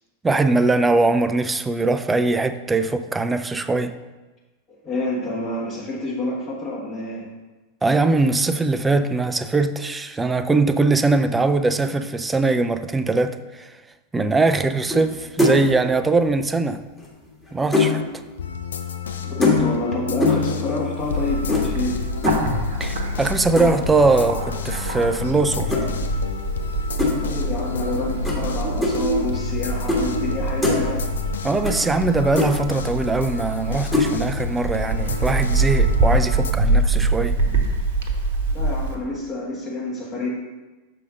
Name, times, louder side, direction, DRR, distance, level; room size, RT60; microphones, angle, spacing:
voice 1, 0.2-3.9 7.8-13.8 14.1-16.8 17.5-18.0 22.8-25.7 31.4-37.4, right 3 dB, 10° right, 0.4 m, -21 dB
voice 2, 4.8-7.3 19.4-22.0 27.2-31.1 38.5-40.3, left 2 dB, 25° left, 1.4 m, -28 dB
sound 1, 14.9-15.1 15.4-15.7 17.0-18.0 19.4-19.9 20.2-20.5 21.5-21.7 22.2-22.5 23.6-23.9 25.7-25.8 27.0-27.1 28.2-28.4 28.8-28.9 29.9-30.0 30.3-30.8 31.6-31.8 32.0-32.1 32.4-32.5 33.9-34.1, left 3 dB, 5° left, 1.6 m, -21 dB
sound 2, 18.4-36.5, left 6 dB, 65° left, 0.5 m, -31 dB
Bird, 21.0-38.9, right 2 dB, 55° right, 0.9 m, -25 dB
6.7 x 4.9 x 3.8 m
figure-of-eight pair, 90°, 0 cm